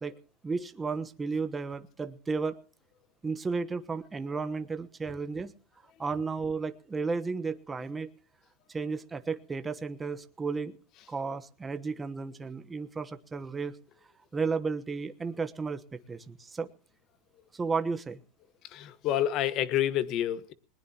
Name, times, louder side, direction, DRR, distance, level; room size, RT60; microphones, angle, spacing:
voice 1, 0.4-2.6 3.2-5.5 6.0-8.1 8.7-10.8 11.1-13.7 14.3-16.7 17.5-18.2, right 4 dB, 15° right, 1.2 m, -33 dB
voice 2, 18.7-20.5, left 12 dB, 50° left, 1.4 m, -28 dB
20.5 x 19.5 x 2.9 m
supercardioid pair, 120°, 0 cm